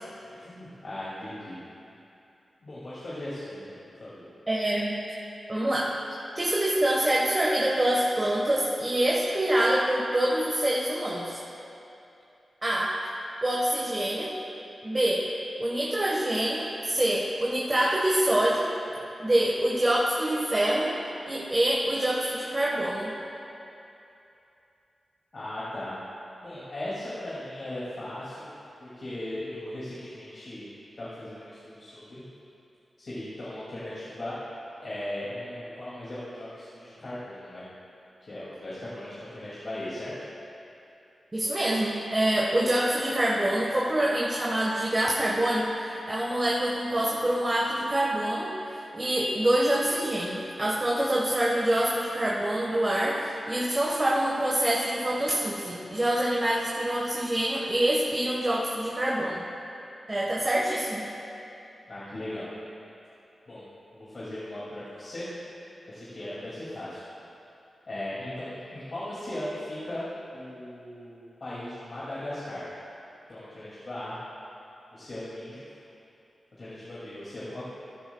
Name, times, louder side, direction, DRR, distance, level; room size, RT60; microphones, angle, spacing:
voice 1, 0.3-1.6 2.6-4.3 25.3-26.0 26.4-28.5 28.8-30.7 31.0-32.2 33.0-34.4 34.8-37.7 38.2-40.1 61.9-62.5 63.5-63.6 63.9-65.3 65.9-67.0 67.9-70.1 70.3-72.7 73.3-74.2 74.9-75.8 76.6-77.6, left 1 dB, 60° left, -10 dB, 2.6 m, -38 dB
voice 2, 4.5-5.1 5.5-6.0 6.3-11.4 12.6-13.0 13.4-14.3 14.8-15.3 15.6-18.7 19.2-21.0 21.3-23.2 41.3-59.4 60.1-61.1, right 1 dB, 35° right, -4 dB, 1.5 m, -26 dB
14.5 x 12.0 x 2.4 m, 2.8 s
cardioid pair, 45°, 0 cm